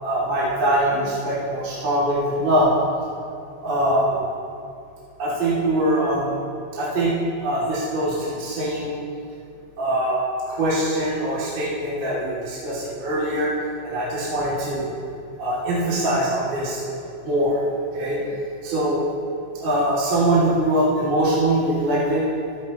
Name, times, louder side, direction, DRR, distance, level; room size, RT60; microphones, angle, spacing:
voice 1, 0.0-2.7 3.6-4.2 5.2-6.4 6.7-7.1 7.4-8.9 9.8-10.2 10.5-13.5 13.8-14.9 15.4-16.8 17.2-18.2 18.6-19.0 19.6-22.2, right 1 dB, 40° right, -10 dB, 3.9 m, -22 dB
16.0 x 13.0 x 3.2 m, 2.5 s
omnidirectional pair, 5.3 m